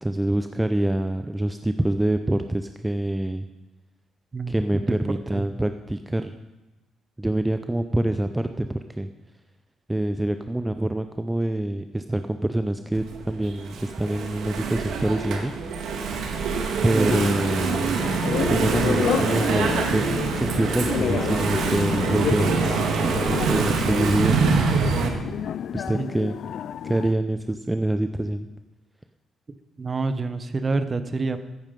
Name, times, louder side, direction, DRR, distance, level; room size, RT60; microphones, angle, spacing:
voice 1, 0.0-3.5 4.5-6.3 7.2-9.1 9.9-15.5 16.8-18.0 18.5-22.5 23.1-24.4 25.7-26.4 26.8-28.5, right 1 dB, 10° right, 9 dB, 0.6 m, -25 dB
Engine / Mechanisms, 12.9-25.1, right 5 dB, 75° right, 1.8 m, -25 dB
voice 2, 16.9-17.2 25.9-26.1 29.8-31.4, right 3 dB, 30° right, 11 dB, 1.1 m, -27 dB
sound 1, 17.1-27.1, left 9 dB, 65° left, 0.4 m, -30 dB
14.5 x 9.0 x 5.3 m, 1.1 s
cardioid pair, 90°, 0 cm